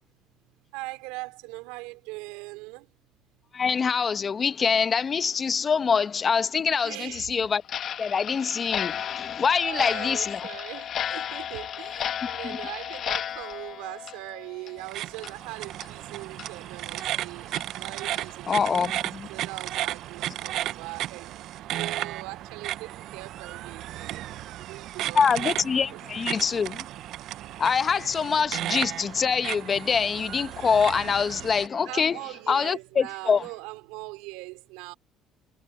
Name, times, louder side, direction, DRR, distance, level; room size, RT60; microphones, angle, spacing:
voice 1, 0.7-2.9 6.8-7.4 8.9-9.0 9.6-18.8 19.3-25.3 25.7-26.0 31.8-34.9, right 23 dB, 90° right, 2.8 m, -41 dB
voice 2, 3.5-7.6 8.0-10.5 12.4-12.6 18.5-19.3 25.1-26.8 27.6-32.2 32.5-33.4, left 6 dB, 40° left, 1.0 m, -25 dB
Clock, 7.6-14.9 15.2-15.3 15.8-15.9 16.4-16.5 17.0-17.1 17.6-17.7 18.1-18.3, left 9 dB, 55° left, 1.5 m, -33 dB
sound 1, 14.8-31.7, right 13 dB, 70° right, 0.6 m, -34 dB
supercardioid pair, 85°, 0 cm